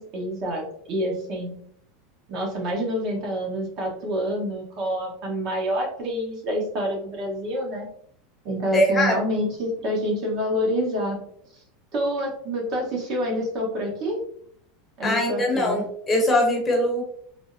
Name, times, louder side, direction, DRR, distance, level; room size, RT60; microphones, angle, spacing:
voice 1, 0.0-1.5 2.3-7.9 8.4-11.2 11.9-14.2 15.0-15.8, equal, 45° right, 0 dB, 0.9 m, -27 dB
voice 2, 8.7-9.2 15.0-17.0, left 1 dB, 20° left, 0 dB, 0.8 m, -21 dB
3.3 x 2.0 x 2.5 m, 0.63 s
supercardioid pair, 145°, 0 cm